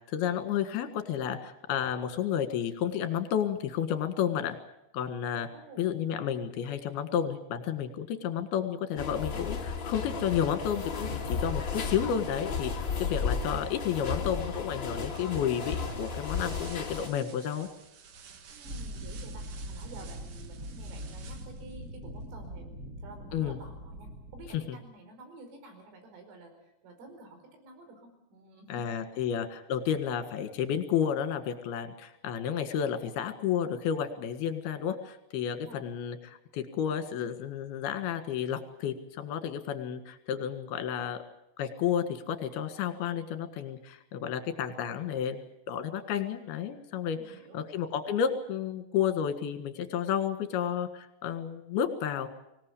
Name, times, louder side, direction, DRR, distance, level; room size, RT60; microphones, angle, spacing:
voice 1, 0.1-4.6 4.9-5.5 5.8-17.7 23.3-23.6 24.5-24.8 28.7-41.2 41.6-52.3, left 8 dB, 60° left, 9 dB, 3.3 m, -31 dB
voice 2, 5.5-6.0 18.5-28.9 29.2-29.3 35.6-35.8 47.1-47.6, right 2 dB, 75° right, 5 dB, 7.3 m, -51 dB
sound 1, 9.0-17.1, left 5 dB, 40° left, 1.7 m, -34 dB
sound 2, 14.9-21.7, right 7 dB, 60° right, 2.2 m, -52 dB
sound 3, 18.6-24.6, equal, 30° right, 1.5 m, -42 dB
25.0 x 18.0 x 8.4 m, 0.86 s
omnidirectional pair, 5.9 m